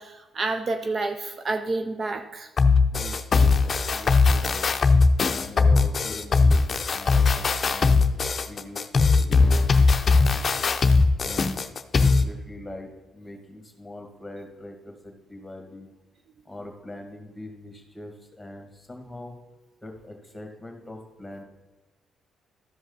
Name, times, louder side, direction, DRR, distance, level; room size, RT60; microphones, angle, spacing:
voice 1, 0.0-2.5, right 3 dB, 45° right, 7 dB, 0.6 m, -29 dB
sound 1, 2.6-12.2, left 4 dB, 40° left, 0.6 m, -20 dB
voice 2, 2.9-4.7 5.3-8.0 8.5-10.7 11.2-11.6 11.9-15.9 16.4-19.4 19.8-21.4, left 1 dB, 10° left, 3 dB, 2.0 m, -42 dB
13.0 x 5.1 x 4.0 m, 1.1 s
cardioid pair, 90°, 0 cm